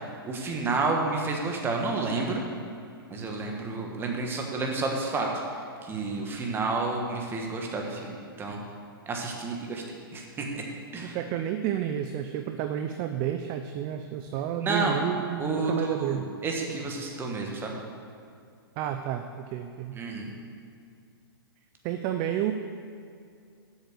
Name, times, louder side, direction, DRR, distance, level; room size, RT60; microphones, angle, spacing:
voice 1, 0.2-2.4 3.1-5.3 5.8-8.6 9.1-9.8 10.1-10.6 10.9-11.2 14.6-15.0 15.4-17.7 19.9-20.3, right 3 dB, 15° right, 1 dB, 1.4 m, -30 dB
voice 2, 11.1-16.3 18.8-20.0 21.8-22.5, right 10 dB, 30° right, 7 dB, 0.4 m, -30 dB
7.9 x 6.5 x 6.6 m, 2.4 s
hypercardioid pair, 125°, 13 cm